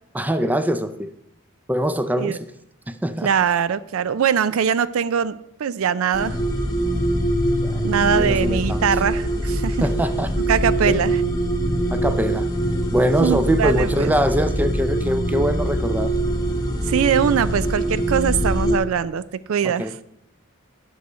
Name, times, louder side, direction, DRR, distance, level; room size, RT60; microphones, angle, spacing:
voice 1, 0.1-1.1 1.7-2.4 2.9-3.3 7.6-7.8 8.2-8.8 9.8-10.3 10.8-11.0 11.9-12.5 12.9-16.1 19.6-19.9, equal, 10° right, 11 dB, 0.4 m, -23 dB
voice 2, 3.2-6.4 7.8-9.9 10.5-11.2 13.2-14.1 16.8-19.2 19.5-19.9, right 7 dB, 80° right, 16 dB, 0.4 m, -22 dB
sound 1, 6.1-18.8, right 1 dB, 20° left, 1.1 m, -23 dB
9.4 x 6.3 x 5.5 m, 0.78 s
head